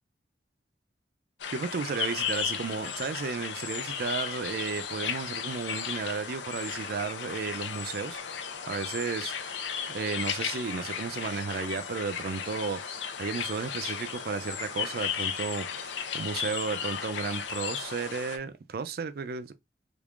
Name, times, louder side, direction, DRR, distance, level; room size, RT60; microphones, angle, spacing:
sound 1, 1.4-18.4, left 7 dB, 85° left, 0.6 m, -35 dB
voice 1, 1.5-8.2 8.7-9.6 9.9-19.5, right 5 dB, 55° right, 0.4 m, -33 dB
3.6 x 3.3 x 2.4 m
head